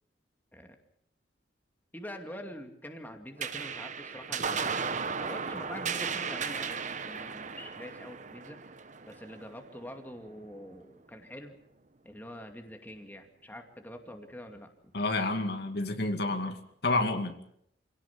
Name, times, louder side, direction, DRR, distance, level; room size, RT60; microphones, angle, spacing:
voice 1, 1.9-4.9 5.2-6.8 7.0-8.6 9.1-11.5 12.0-14.7, equal, 10° left, 4 dB, 2.4 m, -45 dB
sound 1, 3.4-10.2, right 5 dB, 45° right, 1.2 m, -35 dB
voice 2, 14.9-16.6 16.8-17.4, left 2 dB, 65° left, 6 dB, 2.3 m, -29 dB
27.0 x 17.5 x 7.3 m, 0.73 s
head